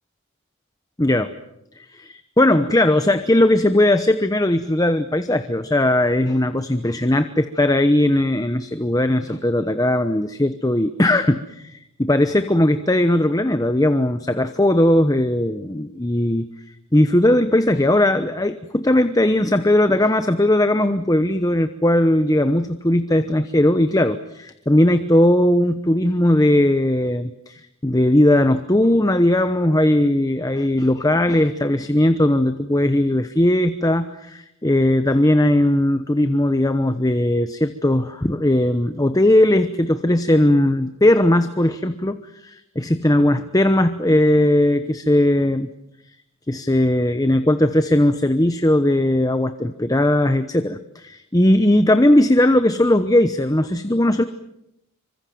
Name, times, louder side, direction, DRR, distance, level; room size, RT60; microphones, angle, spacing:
voice 1, 1.0-1.3 1.8-16.5 16.9-45.7 46.5-54.2, left 1 dB, 15° left, 10 dB, 0.9 m, -18 dB
27.0 x 25.0 x 7.8 m, 0.83 s
head